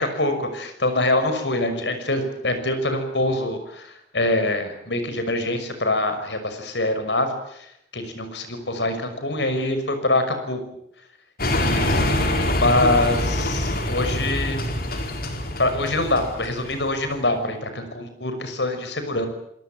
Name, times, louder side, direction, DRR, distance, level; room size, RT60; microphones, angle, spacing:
voice 1, 0.0-7.7 7.9-10.6 11.5-14.6 15.6-19.3, left 2 dB, 90° left, 8 dB, 6.0 m, -24 dB
sound 1, 11.4-17.1, left 1 dB, 60° left, 4.5 m, -25 dB
26.5 x 19.5 x 9.0 m, 0.76 s
head